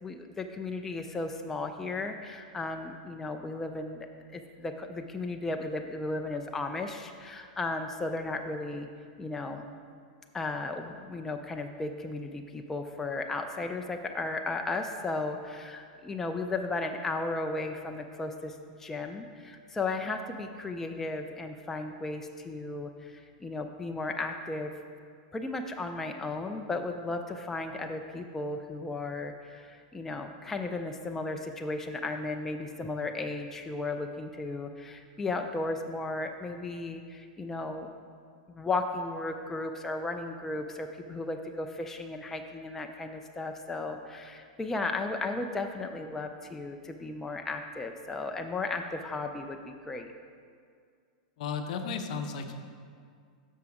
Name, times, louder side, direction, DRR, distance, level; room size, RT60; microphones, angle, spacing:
voice 1, 0.0-8.9 9.2-9.6 10.3-24.8 25.3-37.9 38.5-50.1, left 3 dB, 10° left, 4 dB, 0.3 m, -35 dB
voice 2, 51.4-52.5, left 5 dB, 65° left, 6 dB, 0.7 m, -34 dB
6.7 x 6.2 x 4.8 m, 2.2 s
supercardioid pair, 145°, 4 cm